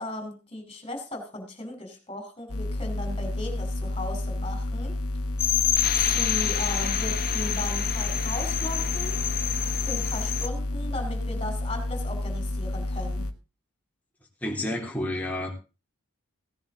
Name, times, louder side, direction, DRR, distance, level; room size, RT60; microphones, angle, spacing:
voice 1, 0.0-4.9 6.1-9.2 9.8-13.3, left 1 dB, 25° left, 6 dB, 4.9 m, -37 dB
sound 1, 2.5-13.3, left 1 dB, 85° left, 1.3 m, -30 dB
sound 2, 5.4-10.5, left 10 dB, 45° left, 1.0 m, -27 dB
voice 2, 14.4-15.6, left 1 dB, 5° left, 0 dB, 3.3 m, -30 dB
17.0 x 10.5 x 3.9 m, 0.30 s
head